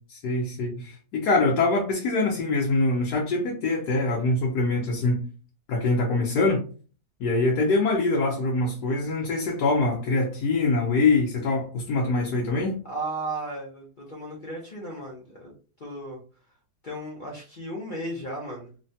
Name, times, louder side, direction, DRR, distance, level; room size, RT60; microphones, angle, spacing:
voice 1, 0.1-5.2 5.7-6.6 7.2-12.8, left 3 dB, 80° left, -1 dB, 1.2 m, -24 dB
voice 2, 12.8-15.5 15.8-16.2 16.8-18.7, right 1 dB, 55° left, -3 dB, 0.5 m, -35 dB
3.2 x 2.1 x 2.7 m, 0.38 s
omnidirectional pair, 1.7 m